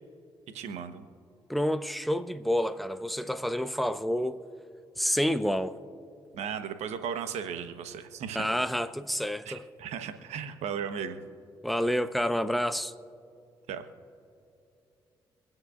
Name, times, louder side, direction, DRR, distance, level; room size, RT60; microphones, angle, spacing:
voice 1, 0.5-1.0 6.3-8.5 9.5-11.2 13.7-13.8, right 7 dB, 70° right, 1.2 m, -36 dB
voice 2, 1.5-4.4 5.0-5.7 8.3-9.7 11.6-12.9, equal, ahead, 1.0 m, -28 dB
26.0 x 9.5 x 2.5 m
hypercardioid pair, 40°, 12 cm